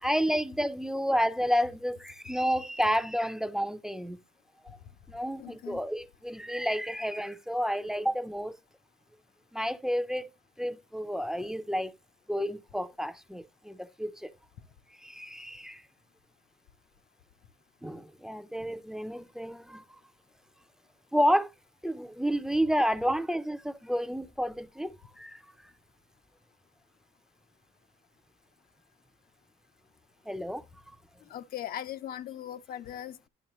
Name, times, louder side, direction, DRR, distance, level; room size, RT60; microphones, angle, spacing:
voice 1, 0.0-4.2 5.1-8.6 9.5-10.3 10.6-11.9 12.3-14.3 15.0-15.8 17.8-19.8 21.1-21.5 21.8-25.4 30.3-30.6, equal, 5° right, 0.6 m, -30 dB
voice 2, 5.4-5.8 31.3-33.3, left 10 dB, 60° left, 0.8 m, -39 dB
10.5 x 6.5 x 3.0 m
cardioid pair, 110°, 17 cm